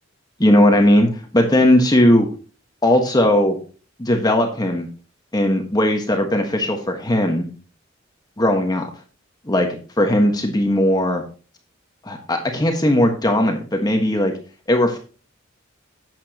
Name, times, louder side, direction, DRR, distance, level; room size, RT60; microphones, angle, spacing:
voice 1, 0.4-2.3 2.8-3.6 4.0-4.9 5.3-7.5 8.4-8.9 9.5-9.7 10.0-11.2 12.0-14.3 14.7-15.0, left 1 dB, 20° left, 3 dB, 1.4 m, -17 dB
11.0 x 8.6 x 2.9 m, 0.37 s
head